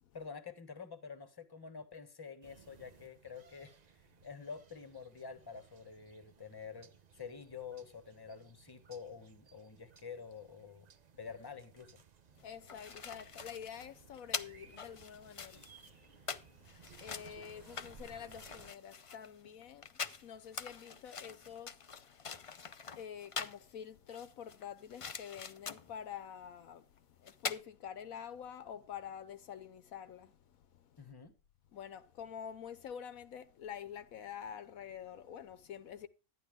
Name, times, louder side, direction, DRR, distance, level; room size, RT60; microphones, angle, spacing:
voice 1, 0.1-3.8 4.2-6.9 7.2-10.9 11.2-12.0 31.0-31.3, left 5 dB, 15° left, 1.2 m, -48 dB
sound 1, 2.4-18.7, right 6 dB, 40° right, 0.6 m, -61 dB
voice 2, 12.4-31.0 31.7-36.1, left 8 dB, 75° left, 1.2 m, -48 dB
sound 2, 12.4-23.7 24.1-26.0 27.0-27.1 27.3-27.6, left 5 dB, 45° left, 0.4 m, -44 dB
12.0 x 10.0 x 3.6 m
omnidirectional pair, 1.5 m